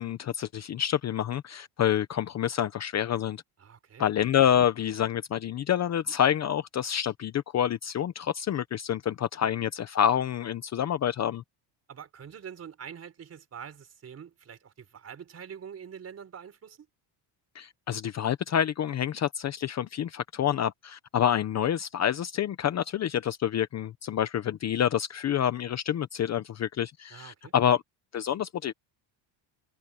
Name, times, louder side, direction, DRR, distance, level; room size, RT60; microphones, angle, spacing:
voice 1, 0.0-3.4 4.0-11.4 17.5-27.8 28.1-28.7, left 9 dB, 35° left, 0.7 m, -27 dB
voice 2, 3.6-4.1 11.9-16.9 27.1-27.5, right 8 dB, 30° right, 4.5 m, -45 dB
cardioid pair, 155°, 48 cm